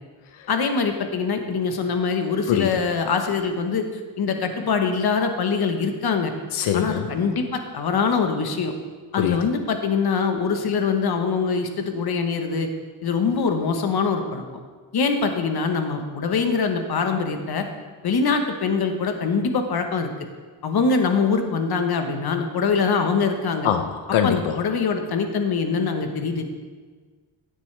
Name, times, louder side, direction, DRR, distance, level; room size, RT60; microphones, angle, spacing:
voice 1, 0.5-3.8 4.2-6.3 6.7-8.7 9.1-12.7 13.0-14.4 14.9-17.6 18.0-20.1 20.6-23.7 24.2-26.4, left 5 dB, 50° left, 6 dB, 1.2 m, -23 dB
voice 2, 6.5-7.0 9.2-9.4 23.6-24.5, left 9 dB, 90° left, 7 dB, 0.7 m, -22 dB
16.0 x 9.3 x 3.3 m, 1.5 s
wide cardioid pair, 140°, 47 cm